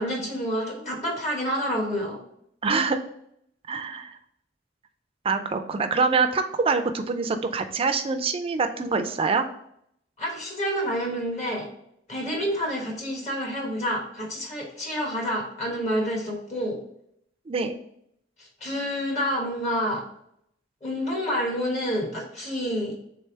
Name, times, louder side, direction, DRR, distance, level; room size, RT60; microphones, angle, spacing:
voice 1, 0.0-2.2 10.2-11.7 12.1-16.8 18.6-20.0 20.8-22.9, equal, 40° left, -1 dB, 1.1 m, -28 dB
voice 2, 2.6-3.0 3.7-4.2 5.2-9.4 17.5-17.8, right 4 dB, 30° right, 7 dB, 0.4 m, -25 dB
3.4 x 3.3 x 4.5 m, 0.73 s
head